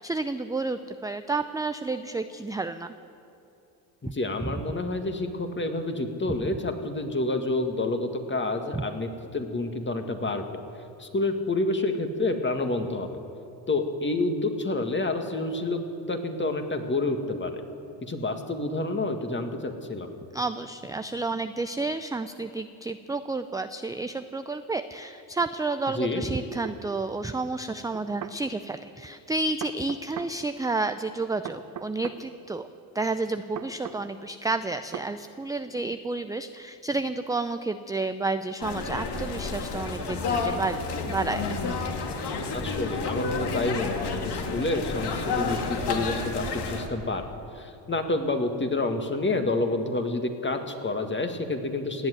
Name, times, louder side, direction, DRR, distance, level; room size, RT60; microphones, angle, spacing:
voice 1, 0.0-2.9 4.4-4.5 8.7-8.8 20.3-32.7 32.9-40.8 41.1-41.4, right 3 dB, 10° right, 9 dB, 0.5 m, -30 dB
voice 2, 4.0-10.5 11.0-13.1 13.7-15.8 16.1-17.6 18.0-20.1 25.9-26.2 42.5-47.2 47.5-52.1, left 2 dB, 25° left, 5 dB, 2.0 m, -28 dB
sound 1, 26.6-26.8 27.9-28.4 29.6-30.3 31.4-32.2 33.6-34.0 34.9-35.1, right 9 dB, 40° right, 1.0 m, -38 dB
sound 2, 38.6-46.9, left 4 dB, 55° left, 2.3 m, -30 dB
18.0 x 8.0 x 9.5 m, 2.8 s
hypercardioid pair, 65°, 49 cm